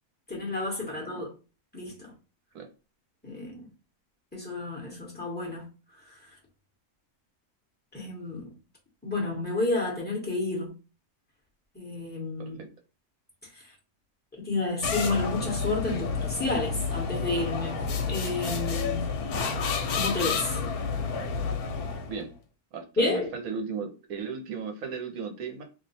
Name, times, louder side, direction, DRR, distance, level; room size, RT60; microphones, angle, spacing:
voice 1, 0.3-1.3 1.7-2.1 3.2-3.7 4.3-5.7 6.0-6.2 7.9-8.5 9.0-10.7 11.7-12.6 14.4-17.8 18.1-19.1 19.9-20.6 23.0-23.3, left 2 dB, 5° left, 1.0 m, -30 dB
voice 2, 0.9-1.2 2.5-2.7 12.4-12.7 22.1-22.3 22.7-25.6, right 5 dB, 70° right, 1.2 m, -36 dB
sound 1, 14.8-22.2, left 5 dB, 75° left, 1.1 m, -30 dB
2.7 x 2.1 x 4.1 m
omnidirectional pair, 1.6 m